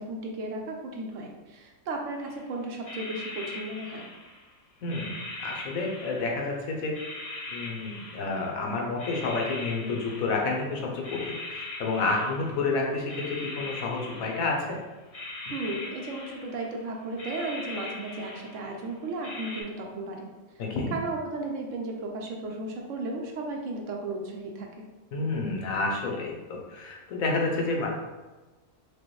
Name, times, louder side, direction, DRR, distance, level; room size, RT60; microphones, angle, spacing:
voice 1, 0.0-4.1 15.5-20.3 20.9-24.9, right 2 dB, 70° right, 1 dB, 0.9 m, -35 dB
sound 1, 2.2-2.4 2.8-4.5 4.9-6.6 6.9-8.6 9.0-10.6 10.9-12.7 13.1-14.7 15.1-16.8 17.1-18.9 19.2-19.6, left 2 dB, 40° left, 0.5 m, -40 dB
voice 2, 4.8-6.9 7.5-14.8 20.6-21.0 25.1-27.9, left 3 dB, 85° left, 0 dB, 1.2 m, -30 dB
4.9 x 2.2 x 3.1 m, 1.2 s
omnidirectional pair, 1.4 m